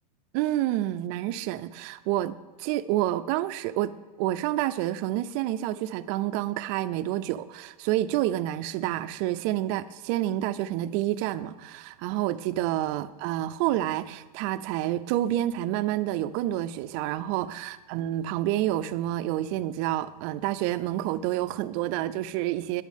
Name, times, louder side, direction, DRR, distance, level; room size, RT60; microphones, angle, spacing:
voice 1, 0.3-3.9 4.2-22.8, right 14 dB, 40° right, 12 dB, 0.4 m, -28 dB
9.7 x 6.2 x 7.2 m, 1.2 s
supercardioid pair, 155°, 20 cm